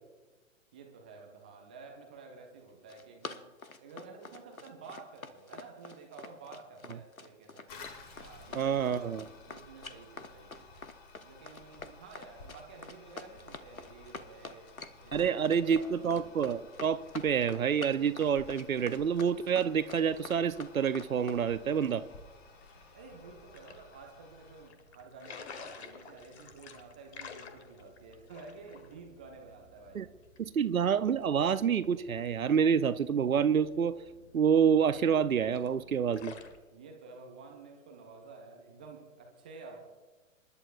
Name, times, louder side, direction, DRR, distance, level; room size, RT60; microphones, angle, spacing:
voice 1, 0.7-3.4 3.8-7.7 8.1-10.7 11.2-14.7 15.0-15.9 22.9-30.1 36.7-39.8, right 4 dB, 5° right, 0.4 m, -51 dB
Run, 2.7-21.4, left 3 dB, 85° left, 1.0 m, -46 dB
Toilet flush, 7.7-24.7, left 3 dB, 35° left, 2.2 m, -54 dB
voice 2, 8.5-9.2 15.1-22.0 29.9-30.1 30.4-33.9 34.3-36.3, right 7 dB, 80° right, 0.7 m, -28 dB
sound 1, 21.6-36.6, left 6 dB, 50° left, 1.5 m, -53 dB
27.0 x 11.5 x 2.4 m
figure-of-eight pair, 115°, 41 cm